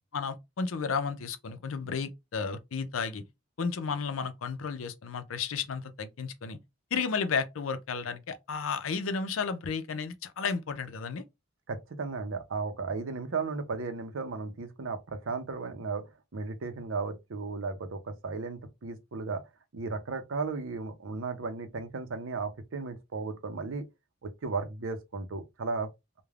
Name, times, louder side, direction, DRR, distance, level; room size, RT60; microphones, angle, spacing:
voice 1, 0.1-3.2 3.6-6.6 6.9-11.2, left 5 dB, 90° left, 0.5 m, -33 dB
voice 2, 11.7-16.1 16.3-19.4 19.7-23.8 24.2-25.9, right 4 dB, 80° right, 0.6 m, -35 dB
3.2 x 2.2 x 2.4 m
head